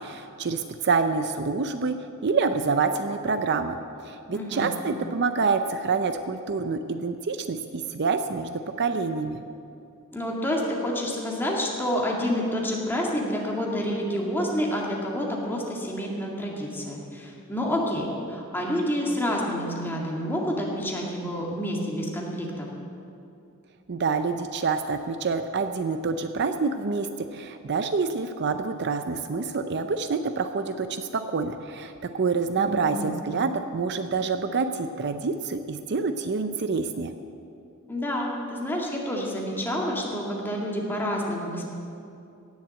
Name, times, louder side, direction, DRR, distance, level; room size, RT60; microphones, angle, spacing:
voice 1, 0.0-2.0 2.2-3.8 4.0-9.4 23.9-37.1, right 4 dB, 50° right, 8 dB, 0.5 m, -27 dB
voice 2, 4.3-4.7 10.1-22.7 32.6-33.2 37.9-41.7, equal, 10° left, -2 dB, 2.0 m, -28 dB
17.5 x 7.3 x 7.6 m, 2.6 s
head